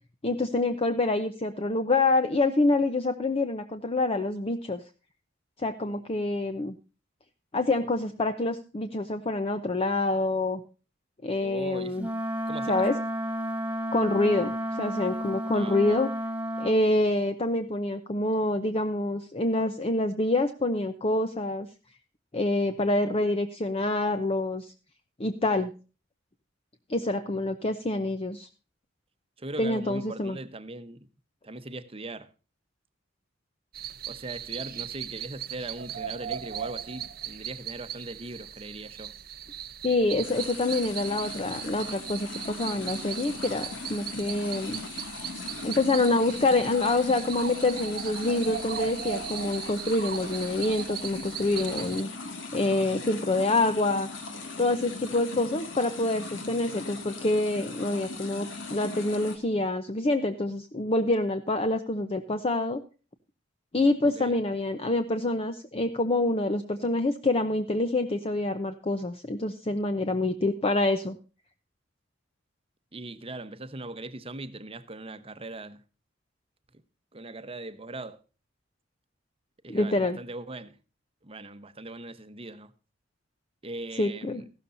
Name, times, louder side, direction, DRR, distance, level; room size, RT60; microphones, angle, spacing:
voice 1, 0.2-4.8 5.6-6.7 7.5-10.6 11.2-12.1 12.7-12.9 13.9-16.1 16.6-21.7 22.3-24.7 25.2-25.7 26.9-28.5 29.6-30.4 39.8-44.8 45.6-52.1 52.5-54.1 54.6-62.8 63.7-71.2 79.7-80.2 84.0-84.4, left 2 dB, 30° left, 0.7 m, -26 dB
voice 2, 11.4-12.1 12.5-12.8 15.5-16.0 29.4-31.1 31.4-32.3 34.1-39.1 64.0-64.3 72.9-75.8 77.1-78.2 79.6-80.8 81.2-82.7 83.6-84.4, right 2 dB, 30° right, 1.0 m, -40 dB
Wind instrument woodwind instrument, 12.0-16.8, equal, 10° right, 1.0 m, -32 dB
sound 1, 33.7-52.0, right 9 dB, 50° right, 0.7 m, -38 dB
sound 2, 40.2-59.4, left 3 dB, 75° left, 2.3 m, -39 dB
15.0 x 12.5 x 2.6 m
head